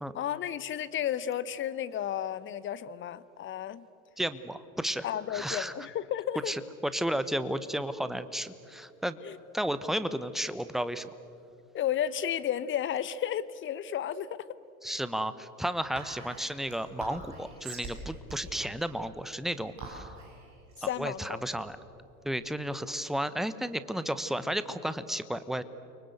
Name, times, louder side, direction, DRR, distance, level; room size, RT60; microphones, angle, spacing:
voice 1, 0.1-3.9 5.0-6.5 9.2-9.4 11.7-14.4 20.9-21.5, left 10 dB, 25° left, 17 dB, 1.0 m, -33 dB
voice 2, 4.2-5.7 6.5-9.2 9.5-11.1 14.8-20.1 20.8-21.8 22.2-25.6, equal, ahead, 13 dB, 1.1 m, -33 dB
Whispering, 15.9-22.6, right 3 dB, 40° right, 7.7 m, -45 dB
30.0 x 24.0 x 8.1 m, 2.6 s
figure-of-eight pair, 75°, 44 cm